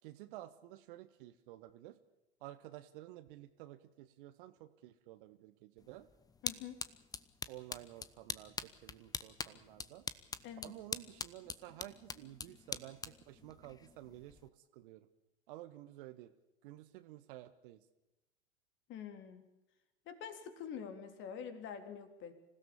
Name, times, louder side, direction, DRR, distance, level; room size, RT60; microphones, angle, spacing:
voice 1, 0.0-2.0 2.4-6.1 7.5-10.0 10.6-15.1 15.5-16.3 16.6-17.8, right 15 dB, 50° right, 10 dB, 1.6 m, -52 dB
sound 1, 5.8-14.5, left 5 dB, 10° left, 0.9 m, -45 dB
voice 2, 6.4-6.8 10.4-10.8 18.9-19.5 20.0-22.3, left 7 dB, 35° left, 8 dB, 3.4 m, -46 dB
26.0 x 16.5 x 7.1 m, 0.95 s
figure-of-eight pair, 95°, 34 cm